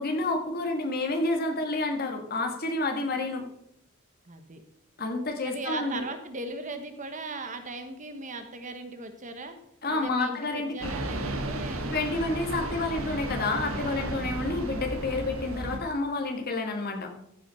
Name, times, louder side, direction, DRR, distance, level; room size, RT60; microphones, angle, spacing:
voice 1, 0.0-3.4 5.0-6.0 9.8-10.9 11.9-17.1, left 2 dB, 45° left, 3 dB, 1.8 m, -29 dB
voice 2, 4.2-4.6 5.4-9.6 9.9-11.8, right 2 dB, 35° right, 8 dB, 1.1 m, -38 dB
sound 1, 10.8-15.8, right 2 dB, 70° right, 1.5 m, -33 dB
14.5 x 6.1 x 5.6 m, 0.75 s
head